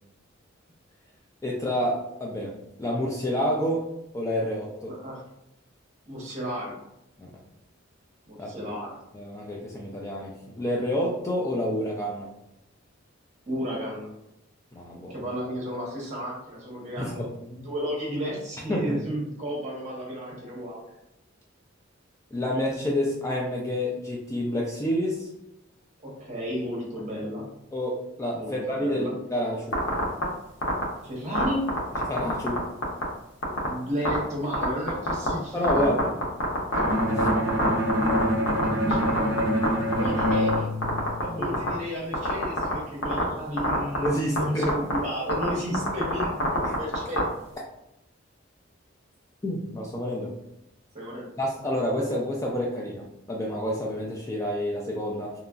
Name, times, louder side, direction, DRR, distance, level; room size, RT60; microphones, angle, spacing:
voice 1, 1.4-3.9 4.1-5.0 7.2-7.3 8.4-8.7 9.1-12.3 14.7-15.1 17.0-17.3 18.7-19.0 22.3-25.3 27.7-29.8 32.1-32.7 35.5-36.1 37.1-37.3 41.5-41.6 44.0-44.9 46.6-46.8 49.4-50.3 51.4-55.3, equal, 15° left, -2 dB, 0.3 m, -29 dB
voice 2, 4.9-5.2 6.1-6.7 8.3-8.9 13.5-14.1 15.1-20.8 26.0-27.5 28.3-29.1 31.0-31.6 33.4-35.9 38.8-39.4 40.0-40.7 41.2-47.3 50.9-51.3, equal, 35° right, -3 dB, 1.0 m, -33 dB
sound 1, 29.7-30.2 30.6-30.8 31.3-32.6 32.8-33.0 33.4-33.7 34.0-34.2 34.5-35.3 35.6-38.6 38.9-39.7 39.9-40.5 40.8-41.7 42.1-42.7 43.0-43.2 43.6-44.1 44.4-44.5 44.6-45.0 45.3-45.5 45.7-47.2, left 1 dB, 70° left, 0.8 m, -24 dB
Bowed string instrument, 36.7-41.6, equal, 70° right, 0.6 m, -26 dB
2.9 x 2.4 x 2.3 m, 0.84 s
head